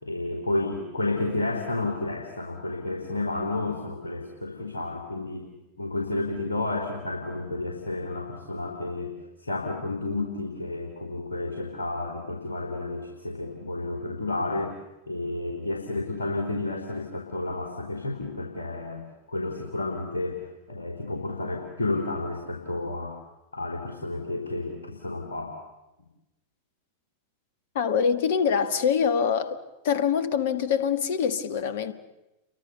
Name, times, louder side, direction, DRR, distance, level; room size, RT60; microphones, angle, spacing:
voice 1, 0.0-5.5 5.8-9.1 9.4-14.8 15.1-19.0 19.3-23.2 23.5-25.6, left 2 dB, 75° left, 3.7 m, -31 dB
voice 2, 27.7-29.6 29.8-31.9, left 7 dB, 55° left, 1.8 m, -24 dB
29.5 x 23.5 x 6.9 m
figure-of-eight pair, 90°, 0 cm